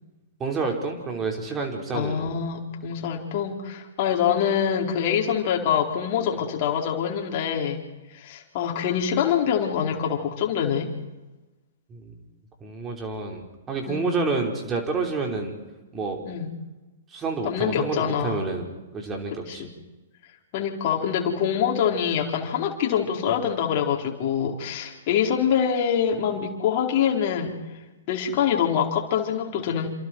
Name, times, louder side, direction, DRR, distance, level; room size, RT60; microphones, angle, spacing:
voice 1, 0.4-2.3 11.9-12.1 12.6-15.5 15.9-16.2 17.1-18.6 18.9-19.7, right 4 dB, 20° right, 1 dB, 5.0 m, -29 dB
voice 2, 1.9-7.8 8.1-10.9 13.9-14.1 16.3-16.5 17.4-18.4 19.5-19.7 20.5-27.6 28.1-29.9, left 8 dB, 40° left, 1 dB, 4.4 m, -25 dB
28.5 x 27.5 x 4.8 m, 1.1 s
figure-of-eight pair, 115°, 0 cm